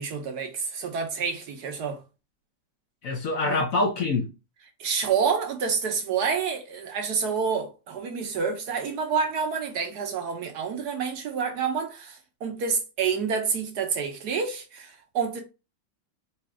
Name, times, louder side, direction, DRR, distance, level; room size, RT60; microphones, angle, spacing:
voice 1, 0.0-2.0 3.5-3.6 4.8-15.4, right 6 dB, 65° right, 1.3 m, -28 dB
voice 2, 3.0-4.3, left 3 dB, 55° left, 1.0 m, -25 dB
4.2 x 2.6 x 4.7 m
omnidirectional pair, 2.0 m